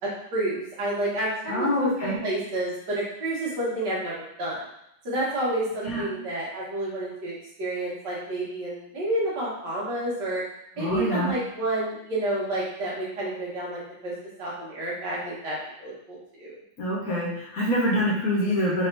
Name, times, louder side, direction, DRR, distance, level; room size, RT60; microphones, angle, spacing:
voice 1, 0.0-4.1 4.4-4.6 5.0-10.4 10.8-14.1 14.4-16.5, right 1 dB, 65° right, -7 dB, 2.1 m, -30 dB
voice 2, 1.5-2.2 5.8-6.0 10.8-11.3 16.8-18.9, equal, 55° left, -4 dB, 1.3 m, -25 dB
4.7 x 3.3 x 3.3 m, 0.77 s
omnidirectional pair, 2.0 m